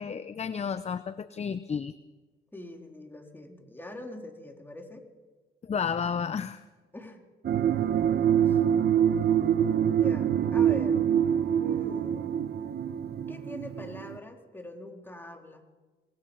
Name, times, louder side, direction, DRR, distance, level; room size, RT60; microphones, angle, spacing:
voice 1, 0.0-1.9 5.6-6.6, left 6 dB, 35° left, 13 dB, 0.7 m, -32 dB
voice 2, 2.5-5.0 6.9-7.2 8.4-8.6 9.9-11.0 11.6-12.5 13.3-15.6, left 1 dB, 10° left, 2 dB, 3.9 m, -43 dB
sound 1, 7.4-14.2, right 9 dB, 55° right, 1.1 m, -25 dB
25.5 x 19.5 x 5.6 m, 1.3 s
cardioid pair, 90°, 20 cm